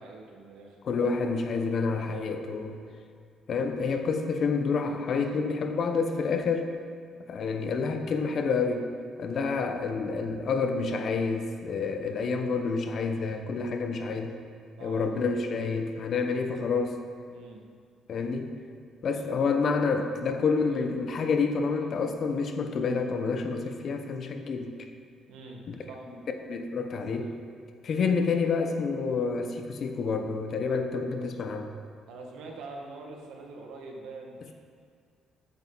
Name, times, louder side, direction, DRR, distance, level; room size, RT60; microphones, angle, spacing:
voice 1, 0.0-0.8 14.8-15.1 17.3-17.6 25.3-26.0 32.1-34.5, right 3 dB, 85° right, 0 dB, 1.9 m, -44 dB
voice 2, 0.8-2.8 3.5-6.7 7.3-8.9 9.2-14.4 14.8-17.0 18.1-18.5 19.0-24.7 25.7-25.8 26.5-27.3 27.8-31.7, left 4 dB, 50° left, 6 dB, 1.0 m, -28 dB
14.0 x 8.9 x 4.1 m, 2.2 s
cardioid pair, 135°, 0 cm